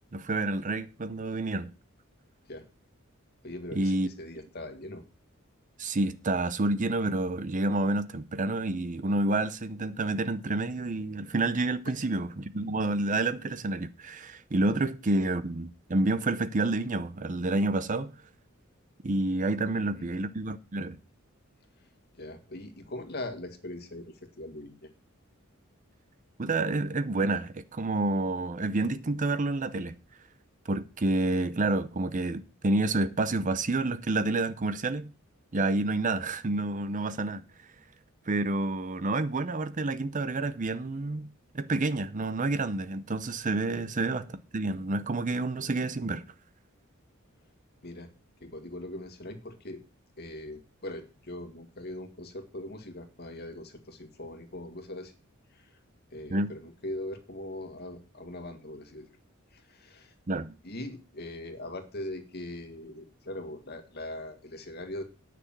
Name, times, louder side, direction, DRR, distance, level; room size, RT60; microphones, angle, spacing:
voice 1, 0.1-1.7 3.7-4.1 5.8-18.1 19.0-21.0 26.4-29.9 30.7-35.1 35.5-37.4 38.3-41.3 41.5-46.2 56.3-56.5 60.3-60.5, right 2 dB, 40° right, 0.7 m, -29 dB
voice 2, 3.4-5.0 11.9-12.0 19.6-20.3 22.2-24.9 43.7-43.9 47.8-48.1 48.4-49.8 50.2-55.1 55.5-55.7 56.1-59.1 59.5-60.1 60.6-65.0, left 1 dB, 50° left, 2.0 m, -41 dB
10.0 x 6.1 x 7.3 m
head